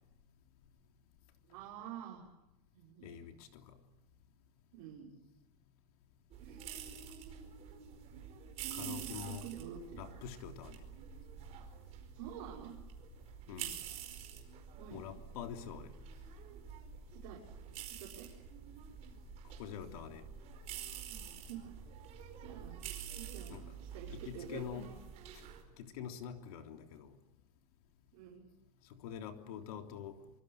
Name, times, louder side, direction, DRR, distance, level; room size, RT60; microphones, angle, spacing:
voice 1, 1.5-2.2 2.7-3.1 4.7-5.1 6.4-6.6 8.6-10.0 12.1-12.8 14.7-15.0 17.1-17.4 18.0-18.3 21.1-21.6 22.0-22.8 23.2-24.9 28.1-28.4, right 8 dB, 60° right, 6.1 m, -48 dB
voice 2, 3.0-3.7 8.7-9.5 9.9-10.8 13.5-13.8 14.9-15.9 19.6-20.2 23.5-23.7 24.1-24.9 25.8-27.1 28.9-30.2, left 8 dB, 75° left, 3.4 m, -46 dB
sound 1, 6.3-25.6, right 8 dB, 35° right, 4.8 m, -48 dB
25.5 x 25.0 x 8.2 m
supercardioid pair, 170°, 19 cm